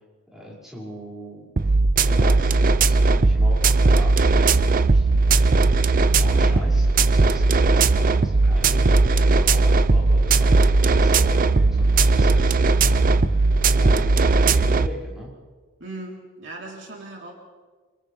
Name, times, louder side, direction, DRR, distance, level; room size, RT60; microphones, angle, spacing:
voice 1, 0.3-1.8 2.1-5.5 6.2-15.4, equal, ahead, -6 dB, 6.2 m, -39 dB
sound 1, 1.6-14.9, right 3 dB, 40° right, 0.5 m, -18 dB
voice 2, 15.8-17.3, right 2 dB, 55° right, -2 dB, 3.9 m, -38 dB
30.0 x 26.0 x 3.5 m, 1.4 s
head